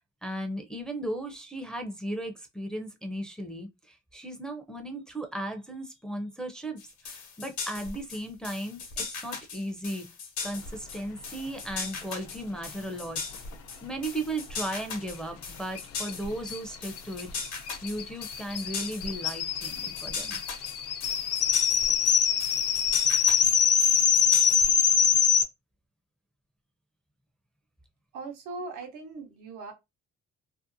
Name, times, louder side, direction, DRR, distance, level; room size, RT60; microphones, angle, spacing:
voice 1, 0.2-10.1 10.4-13.4 13.8-17.3 17.8-20.4, right 1 dB, ahead, 0.5 m, -36 dB
sound 1, 6.8-24.9, left 4 dB, 70° left, 0.9 m, -38 dB
sound 2, 15.7-15.8 16.1-16.2 16.4-25.4, left 7 dB, 55° left, 0.5 m, -24 dB
voice 2, 28.1-29.7, right 3 dB, 90° right, 0.8 m, -39 dB
2.7 x 2.0 x 2.5 m
cardioid pair, 90°, 30 cm